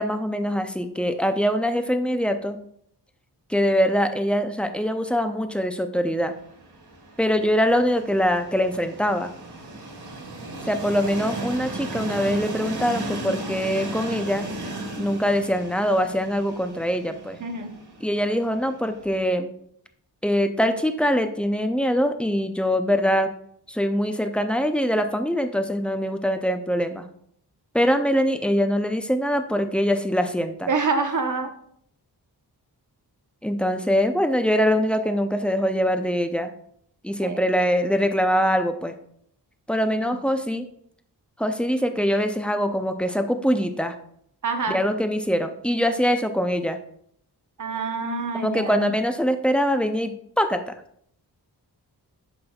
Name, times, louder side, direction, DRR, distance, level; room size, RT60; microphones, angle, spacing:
voice 1, 0.0-2.6 3.5-6.3 7.2-9.3 10.7-14.5 15.0-17.4 18.0-19.5 20.2-23.3 23.7-27.1 27.7-30.7 33.4-36.5 37.0-38.9 39.7-40.6 41.4-43.9 44.7-46.8 48.3-50.7, equal, 5° left, 7 dB, 0.5 m, -23 dB
Train, 6.3-19.3, right 2 dB, 75° right, 1.7 m, -36 dB
voice 2, 17.4-17.8 30.7-31.5 37.2-37.4 39.8-40.2 44.4-44.8 47.6-48.9, right 4 dB, 50° right, 5 dB, 0.9 m, -27 dB
11.0 x 5.1 x 2.3 m, 0.68 s
wide cardioid pair, 110°, 40 cm